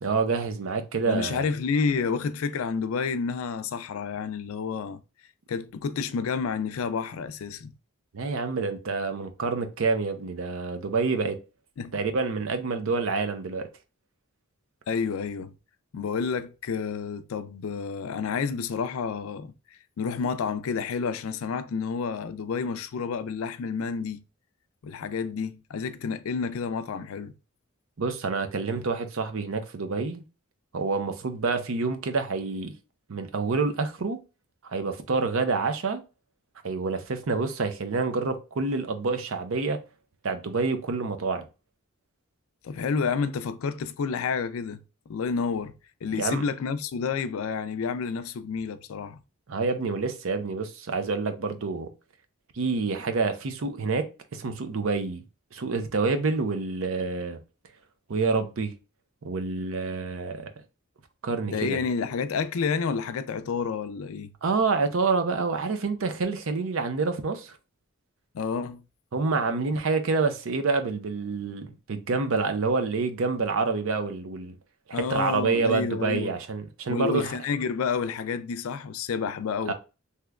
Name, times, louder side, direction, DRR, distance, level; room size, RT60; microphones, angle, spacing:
voice 1, 0.0-1.5 8.1-11.4 11.9-13.7 28.0-30.2 30.7-32.7 33.1-34.2 34.6-36.0 36.6-39.8 40.2-41.5 46.1-46.4 49.5-51.9 52.6-55.2 55.5-57.4 58.1-58.7 59.2-60.5 61.2-61.8 64.4-67.6 69.1-74.5 74.9-77.3 79.7-79.8, right 4 dB, 65° right, 0.5 m, -27 dB
voice 2, 1.0-5.0 5.5-7.7 11.8-11.9 14.9-15.5 15.9-19.5 20.0-24.2 24.8-27.3 42.6-44.8 45.1-45.7 46.0-49.2 61.4-64.3 68.3-68.8 74.9-76.4 76.9-79.7, left 5 dB, 75° left, 0.4 m, -29 dB
3.4 x 2.8 x 2.3 m
head